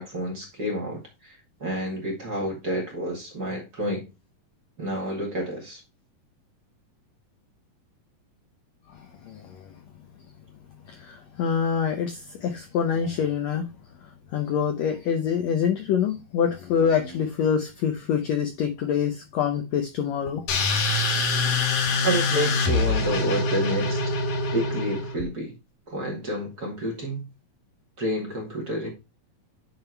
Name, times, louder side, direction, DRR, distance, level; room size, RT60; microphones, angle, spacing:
voice 1, 0.0-4.0 4.8-5.8 22.0-24.0 24.5-25.5 25.9-27.3 28.0-28.9, right 1 dB, 35° right, 1.9 m, -29 dB
voice 2, 8.9-9.7 10.9-13.6 14.3-20.5, left 7 dB, 90° left, 1.5 m, -26 dB
sound 1, 20.5-25.2, left 3 dB, 65° left, 2.9 m, -24 dB
9.4 x 3.7 x 4.4 m
omnidirectional pair, 4.1 m